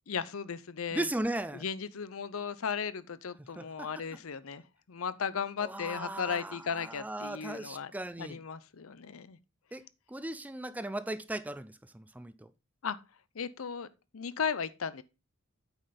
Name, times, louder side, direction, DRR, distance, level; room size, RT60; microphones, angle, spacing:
voice 1, 0.1-1.1 1.5-4.6 4.9-7.9 8.2-9.4 12.8-13.0 13.3-13.9 14.1-15.0, left 6 dB, 90° left, 0.7 m, -36 dB
voice 2, 0.9-1.6 3.6-3.9 5.6-8.4 9.7-9.8 10.1-12.5, right 1 dB, 10° right, 0.4 m, -37 dB
9.0 x 5.4 x 4.1 m
head